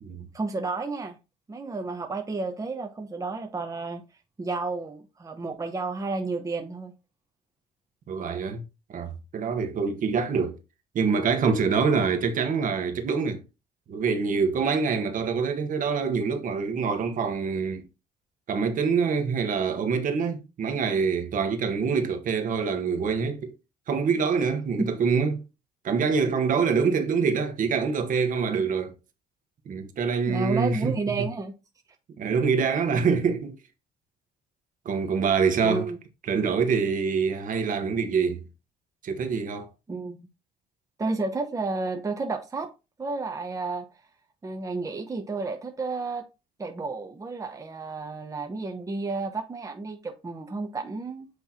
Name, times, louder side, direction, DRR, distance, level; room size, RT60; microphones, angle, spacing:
voice 1, 0.3-1.2 1.5-4.0 4.4-6.9 24.8-24.9 30.2-31.5 35.6-36.0 39.9-40.2 41.0-42.7 43.0-43.9 44.4-46.3 46.6-51.3, right 3 dB, 20° right, 1.0 m, -31 dB
voice 2, 8.1-8.6 8.9-10.6 10.9-13.4 13.9-17.9 18.5-23.5 23.9-25.4 25.8-28.9 29.6-31.3 32.2-33.6 34.8-35.9 36.3-38.4 39.0-39.7, right 5 dB, 50° right, 1.4 m, -25 dB
8.1 x 3.4 x 4.3 m
cardioid pair, 110°, 17 cm